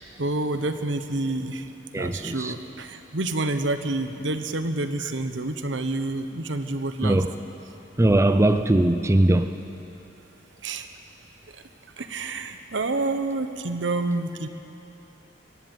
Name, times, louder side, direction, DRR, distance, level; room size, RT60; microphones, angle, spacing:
voice 1, 0.2-1.7 1.9-7.2 10.6-10.9 12.0-14.5, right 2 dB, 75° right, 9 dB, 1.1 m, -28 dB
voice 2, 1.9-2.5 7.0-7.3 8.0-9.6, right 1 dB, 15° right, 9 dB, 0.5 m, -20 dB
23.0 x 13.5 x 9.2 m, 3.0 s
head